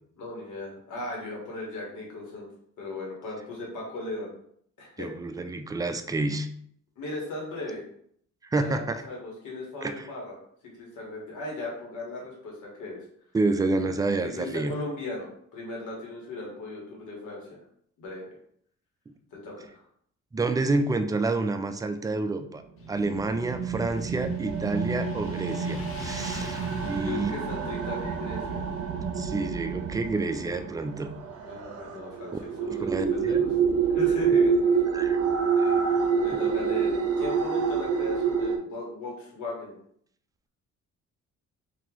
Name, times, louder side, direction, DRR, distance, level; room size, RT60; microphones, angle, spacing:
voice 1, 0.2-2.5 2.8-4.3 4.8-5.1 7.0-7.8 8.6-10.3 10.7-13.0 14.3-17.6 18.0-18.3 19.3-19.8 26.8-28.7 31.4-33.6 33.9-34.8 35.6-35.8 36.2-39.8, left 2 dB, 80° left, -2 dB, 1.5 m, -37 dB
voice 2, 5.0-6.5 8.5-9.0 9.8-10.1 13.3-14.7 20.3-22.6 22.9-27.3 29.2-31.1 32.8-33.5 34.9-35.2 35.6-35.7, right 3 dB, 10° right, 7 dB, 0.3 m, -29 dB
Motorcycle, 22.8-33.9, left 6 dB, 50° left, 0.6 m, -47 dB
sound 1, 22.8-38.6, right 6 dB, 55° right, 0.7 m, -27 dB
2.9 x 2.8 x 3.8 m, 0.66 s
cardioid pair, 90°, 30 cm